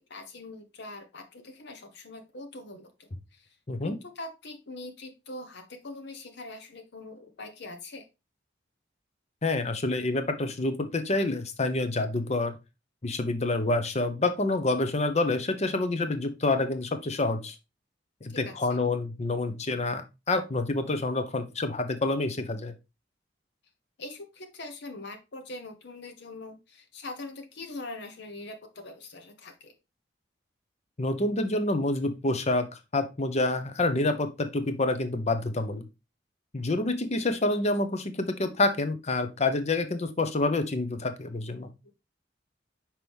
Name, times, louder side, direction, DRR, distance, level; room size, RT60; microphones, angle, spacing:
voice 1, 0.1-3.6 3.8-8.0 18.4-18.8 24.0-29.7 41.8-41.9, left 2 dB, 65° left, 6 dB, 0.9 m, -43 dB
voice 2, 9.4-12.5 13.0-17.5 18.2-22.7 31.0-32.7 32.9-35.9 36.5-41.7, left 2 dB, 35° left, 9 dB, 0.8 m, -27 dB
5.9 x 4.5 x 3.5 m, 0.25 s
head